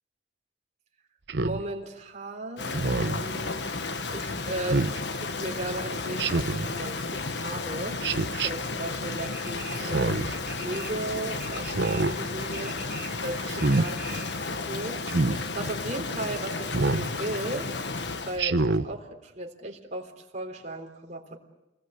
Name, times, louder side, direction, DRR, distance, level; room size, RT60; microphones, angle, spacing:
Speech synthesizer, 1.3-1.6 2.7-3.2 4.7-5.0 6.2-6.7 8.0-8.5 9.8-10.3 11.6-12.1 13.5-13.9 15.1-15.4 16.7-17.1 18.4-18.9, right 3 dB, 75° right, 0.9 m, -26 dB
voice 1, 1.4-8.1 8.4-10.3 10.6-13.0 13.2-17.7 18.2-21.4, right 1 dB, 45° right, 2 dB, 3.5 m, -36 dB
Rain, 2.6-18.4, left 3 dB, 75° left, 1.4 m, -33 dB
sound 1, 9.2-14.5, right 3 dB, 5° right, 4.9 m, -44 dB
28.5 x 20.5 x 8.0 m, 0.96 s
head